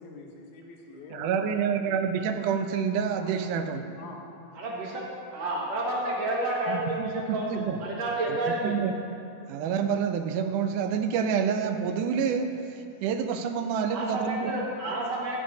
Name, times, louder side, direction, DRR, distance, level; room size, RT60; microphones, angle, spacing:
voice 1, 0.0-1.5 3.1-3.5 4.0-4.3, left 3 dB, 75° left, 1 dB, 2.5 m, -44 dB
voice 2, 1.1-3.8 6.7-7.8 8.3-8.4 8.6-8.9 9.5-14.5, right 7 dB, 85° right, 8 dB, 2.2 m, -28 dB
voice 3, 4.5-5.0 5.3-7.5 7.8-8.8 13.9-15.4, right 2 dB, 60° right, -3 dB, 2.7 m, -30 dB
15.5 x 11.5 x 2.8 m, 2.6 s
omnidirectional pair, 3.5 m